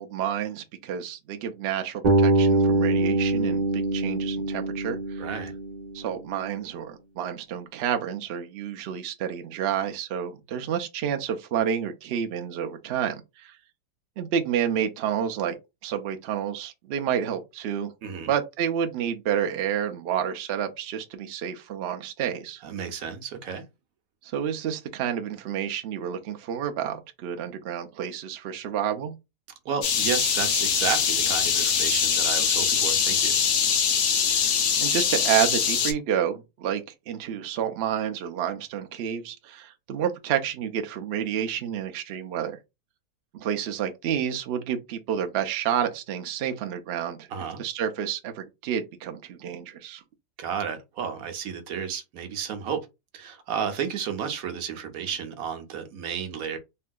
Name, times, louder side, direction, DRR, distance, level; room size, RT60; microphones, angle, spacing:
voice 1, 0.0-5.3 5.9-13.5 14.2-15.5 15.8-17.9 18.2-22.6 24.2-29.1 34.3-34.5 34.8-42.6 43.3-47.3 47.6-50.0, right 9 dB, 85° right, 0.5 m, -29 dB
Bass guitar, 2.0-6.1, right 2 dB, 35° right, 0.8 m, -24 dB
voice 2, 5.2-5.5 18.0-18.3 22.6-23.6 29.7-33.3 47.3-47.6 50.4-52.8 53.1-56.6, right 7 dB, 70° right, 1.0 m, -32 dB
sound 1, 29.8-35.9, left 7 dB, 70° left, 0.7 m, -23 dB
3.3 x 2.7 x 2.2 m
omnidirectional pair, 1.7 m